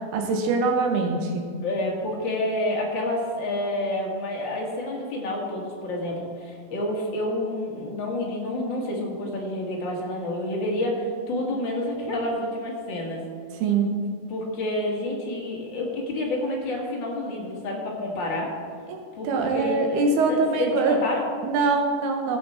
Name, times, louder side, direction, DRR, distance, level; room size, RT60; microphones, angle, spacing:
voice 1, 0.1-1.4 13.6-13.9 18.9-21.0 21.4-22.4, right 4 dB, 75° right, 3 dB, 3.2 m, -23 dB
voice 2, 1.6-13.2 14.3-18.5 19.1-20.0 20.3-21.3, left 1 dB, 45° left, -2 dB, 1.5 m, -29 dB
15.5 x 7.7 x 4.3 m, 2.1 s
omnidirectional pair, 4.7 m